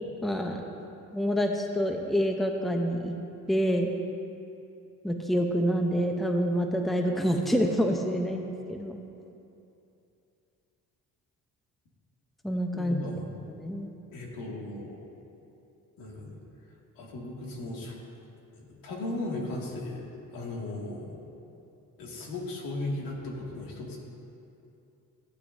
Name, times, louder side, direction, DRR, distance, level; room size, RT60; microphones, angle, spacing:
voice 1, 0.2-0.6 1.1-3.2 3.5-3.9 5.0-9.0 12.4-13.0 13.6-13.9, equal, ahead, 3 dB, 0.7 m, -27 dB
voice 2, 12.7-13.4 14.1-15.0 16.0-16.4 17.0-17.9 18.5-20.0 20.3-21.2 22.0-24.0, left 2 dB, 85° left, -2 dB, 2.2 m, -36 dB
16.0 x 9.2 x 2.7 m, 2.7 s
cardioid pair, 110°, 33 cm